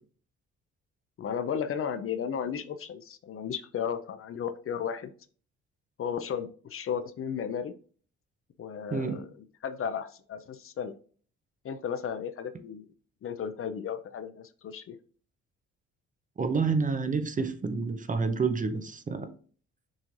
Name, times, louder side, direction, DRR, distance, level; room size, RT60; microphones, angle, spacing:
voice 1, 1.2-5.1 6.0-7.7 8.6-9.3 9.6-10.9 11.6-12.9 13.2-15.0, left 7 dB, 45° left, 11 dB, 0.5 m, -34 dB
voice 2, 8.9-9.2 16.4-19.3, right 4 dB, 25° right, 10 dB, 0.6 m, -29 dB
6.2 x 3.1 x 2.6 m, 0.43 s
cardioid pair, 90°, 30 cm